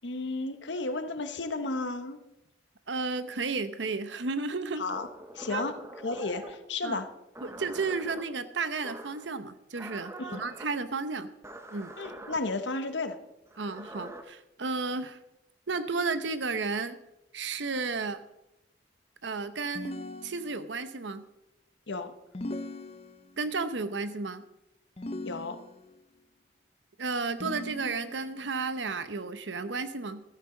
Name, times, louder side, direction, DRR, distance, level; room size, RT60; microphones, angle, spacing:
voice 1, 0.0-2.2 4.8-5.1 5.3-5.7 6.0-7.1 10.2-10.4 12.0-13.2 21.9-22.1 25.2-25.6, left 3 dB, 85° left, 9 dB, 1.1 m, -33 dB
voice 2, 2.9-4.8 5.5-5.6 6.8-7.0 7.4-11.3 11.7-11.9 13.6-15.2 15.7-17.0 17.3-18.2 19.2-20.0 20.2-21.2 23.4-24.4 27.0-30.2, right 4 dB, 85° right, 12 dB, 0.8 m, -33 dB
sound 1, 4.9-6.6 7.3-8.2 8.8-9.3 9.7-10.7 11.4-12.4 13.5-14.2, right 2 dB, 15° right, 0.9 m, -44 dB
sound 2, 19.7-20.9 22.3-23.5 25.0-26.0 27.4-28.4, left 2 dB, 35° left, 0.7 m, -40 dB
14.5 x 13.5 x 3.9 m, 0.88 s
head